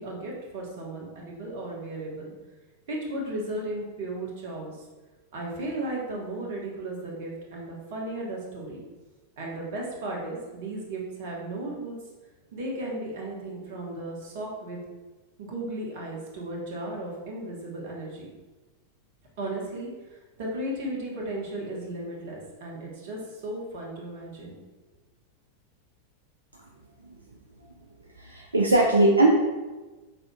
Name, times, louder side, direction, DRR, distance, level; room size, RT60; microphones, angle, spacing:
voice 1, 0.0-2.3 2.9-4.8 5.3-8.9 9.4-12.0 12.5-14.8 15.4-18.3 19.4-24.5, right 1 dB, 50° right, -2 dB, 1.2 m, -35 dB
voice 2, 28.2-29.3, right 2 dB, 80° right, -1 dB, 0.5 m, -20 dB
5.8 x 3.9 x 2.3 m, 1.2 s
figure-of-eight pair, 90°, 0 cm